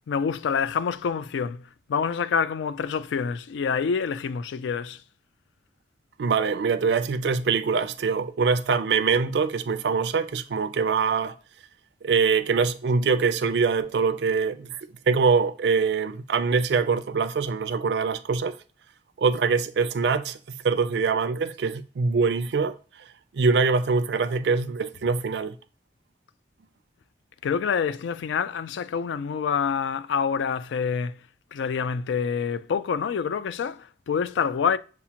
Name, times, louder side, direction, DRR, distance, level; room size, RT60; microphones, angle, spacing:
voice 1, 0.1-5.0 27.4-31.2 31.5-34.8, left 6 dB, 90° left, 0.3 m, -27 dB
voice 2, 6.2-11.3 12.0-18.5 19.2-20.4 20.6-22.8 23.3-25.6, right 5 dB, 65° right, 0.4 m, -24 dB
6.9 x 2.5 x 2.8 m
head